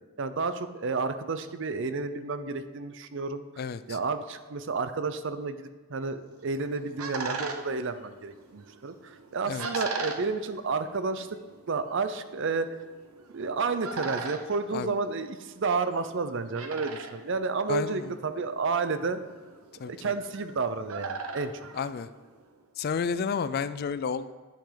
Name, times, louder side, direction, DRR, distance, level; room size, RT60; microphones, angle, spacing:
voice 1, 0.2-3.4 3.9-11.3 11.7-12.8 13.3-19.2 19.9-21.5, right 4 dB, 55° right, 11 dB, 0.5 m, -31 dB
sound 1, 6.3-22.6, right 4 dB, 80° right, 0.9 m, -41 dB
voice 2, 17.7-18.1 19.8-20.1 21.7-22.1 22.8-24.3, left 6 dB, 45° left, 14 dB, 0.3 m, -31 dB
10.0 x 5.8 x 5.0 m, 1.4 s
head